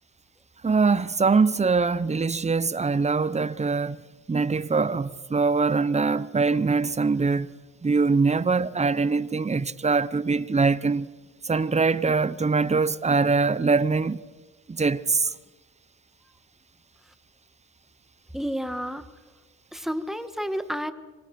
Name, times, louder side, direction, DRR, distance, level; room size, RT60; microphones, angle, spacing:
voice 1, 0.6-4.0 4.3-7.5 7.8-11.1 11.4-14.2 14.7-15.3, right 4 dB, 20° right, 1.0 m, -23 dB
voice 2, 18.3-19.1 19.7-20.9, equal, ahead, 1.7 m, -30 dB
27.0 x 23.5 x 6.1 m
cardioid pair, 90°, 30 cm